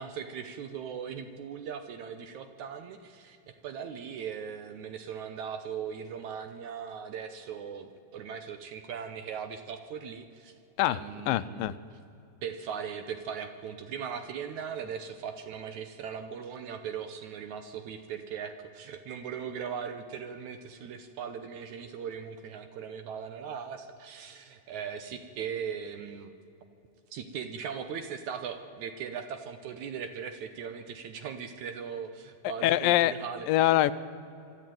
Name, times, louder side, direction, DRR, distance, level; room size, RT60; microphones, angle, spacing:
voice 1, 0.0-10.5 10.8-11.8 12.4-26.3 27.1-33.5, right 7 dB, 70° right, 9 dB, 2.0 m, -39 dB
voice 2, 11.3-11.7 32.4-33.1 33.5-33.9, left 15 dB, 80° left, 15 dB, 2.3 m, -24 dB
24.5 x 12.5 x 9.3 m, 2.7 s
omnidirectional pair, 4.1 m